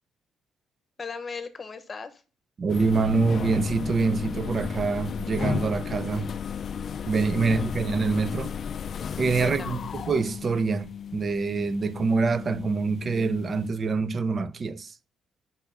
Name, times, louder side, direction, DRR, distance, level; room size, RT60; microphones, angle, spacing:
voice 1, 1.0-2.2 7.4-7.8 9.4-9.7, left 5 dB, 35° left, 0.9 m, -38 dB
voice 2, 2.6-6.3 7.1-8.5 9.2-14.9, right 4 dB, 40° right, 0.5 m, -25 dB
sound 1, 2.7-13.7, left 7 dB, 50° left, 0.3 m, -34 dB
5.5 x 3.5 x 5.6 m
cardioid pair, 90°, 0 cm